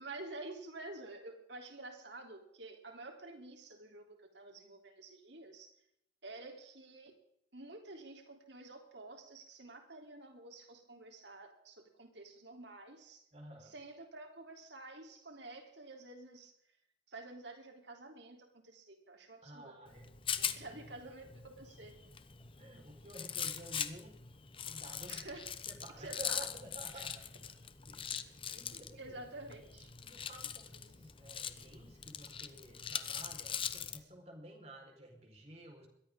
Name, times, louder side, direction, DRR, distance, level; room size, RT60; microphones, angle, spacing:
voice 1, 0.0-5.7 6.2-7.1 7.5-13.2 13.6-16.5 17.1-19.9 20.6-21.9 25.1-25.5 26.0-26.4 26.9-27.0 28.5-29.9, right 2 dB, 70° right, 4 dB, 3.6 m, -50 dB
voice 2, 13.3-13.7 19.4-20.1 20.4-20.8 22.6-24.2 24.7-25.3 25.7-27.5 27.9-28.1 28.4-29.2 30.0-35.9, right 1 dB, 35° right, 1 dB, 4.7 m, -52 dB
Rattle, 19.9-34.0, left 8 dB, 30° left, 0.9 m, -42 dB
22.0 x 16.0 x 3.8 m, 0.74 s
head